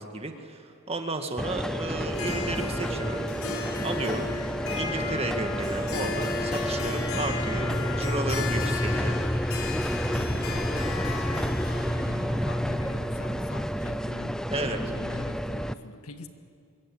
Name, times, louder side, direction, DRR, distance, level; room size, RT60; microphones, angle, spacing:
voice 1, 0.0-3.3 3.8-4.3 4.7-9.2 14.5-14.8, right 2 dB, 30° right, 5 dB, 1.9 m, -33 dB
sound 1, 1.4-15.7, equal, 5° left, 0.6 m, -30 dB
Harp, 2.1-13.9, left 4 dB, 70° left, 4.0 m, -36 dB
voice 2, 7.6-9.2 10.0-14.4 14.8-16.3, left 2 dB, 90° left, 7 dB, 1.8 m, -44 dB
24.5 x 23.0 x 8.8 m, 2.4 s
head